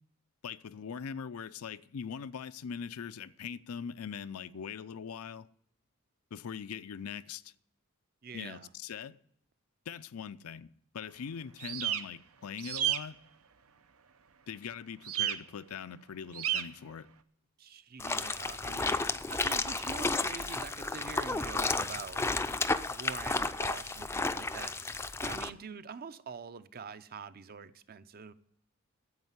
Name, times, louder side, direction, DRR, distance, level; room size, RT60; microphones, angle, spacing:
voice 1, 0.4-5.5 6.3-7.5 8.3-9.2 9.9-10.7 10.9-13.2 14.5-17.1, left 7 dB, 85° left, 0.5 m, -41 dB
voice 2, 8.2-8.7 17.6-22.2 22.9-24.7 25.2-28.3, right 6 dB, 45° right, 0.6 m, -45 dB
sound 1, 11.6-12.0 12.6-13.0 15.1-15.4 16.3-16.6, right 12 dB, 80° right, 0.8 m, -31 dB
sound 2, 18.0-25.5, left 3 dB, 10° left, 0.4 m, -32 dB
9.7 x 8.0 x 9.4 m
head